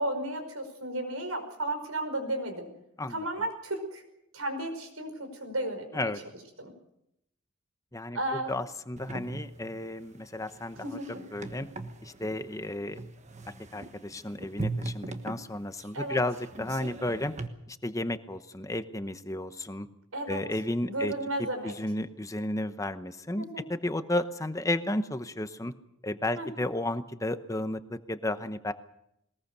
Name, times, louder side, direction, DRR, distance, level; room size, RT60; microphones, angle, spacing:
voice 1, 0.0-2.7 3.1-4.0 4.3-5.1 5.4-6.1 6.6-6.7 8.1-8.5 11.0-11.1 15.9-16.2 20.1-20.4 20.8-21.7 23.4-23.6 26.4-26.5, right 1 dB, 85° right, 7 dB, 5.1 m, -33 dB
voice 2, 7.9-11.0 11.3-11.7 12.0-13.0 13.7-17.3 17.7-19.9 20.3-21.1 21.6-25.7 26.0-28.7, left 1 dB, 15° left, 11 dB, 0.9 m, -33 dB
sound 1, 9.0-17.5, right 2 dB, 35° right, 1.3 m, -40 dB
21.0 x 20.0 x 6.7 m, 0.80 s
head